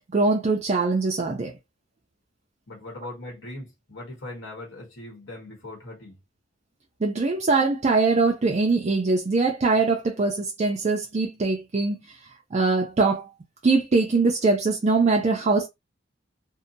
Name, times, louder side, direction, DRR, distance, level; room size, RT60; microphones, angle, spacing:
voice 1, 0.1-1.5 7.0-12.2 12.5-13.3 13.6-15.7, right 3 dB, 35° right, 0.4 m, -22 dB
voice 2, 2.7-6.2, left 1 dB, 75° left, 1.1 m, -40 dB
2.7 x 2.1 x 2.6 m
head